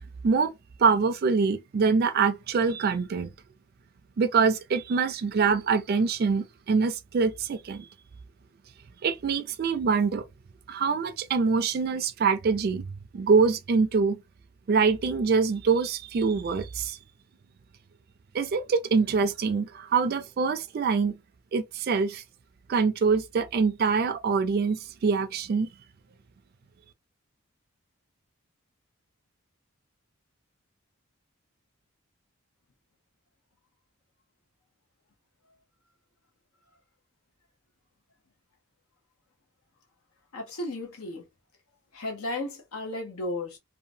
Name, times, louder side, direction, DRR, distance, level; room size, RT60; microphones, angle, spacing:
voice 1, 0.8-3.3 4.2-7.9 9.0-10.2 10.7-12.9 13.1-14.2 14.7-17.0 18.3-21.2 21.5-22.2 22.7-25.7, right 5 dB, 45° right, 0.3 m, -24 dB
voice 2, 40.3-41.2 41.9-43.6, left 2 dB, 85° left, 0.9 m, -34 dB
2.8 x 2.2 x 2.6 m
head